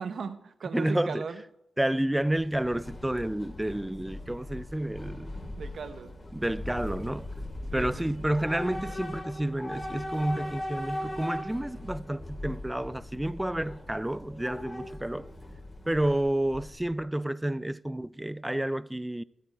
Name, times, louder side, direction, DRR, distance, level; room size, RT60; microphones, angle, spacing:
voice 1, 0.0-1.4 5.6-6.2 7.7-8.0, right 5 dB, 65° right, 1.0 m, -37 dB
voice 2, 0.7-1.3 1.8-5.4 6.3-7.3 7.7-15.3 15.9-19.2, right 1 dB, 10° right, 0.4 m, -30 dB
Train / Subway metro underground, 2.2-17.0, left 1 dB, 30° left, 2.7 m, -39 dB
15.0 x 8.4 x 4.7 m
cardioid pair, 75°, 0 cm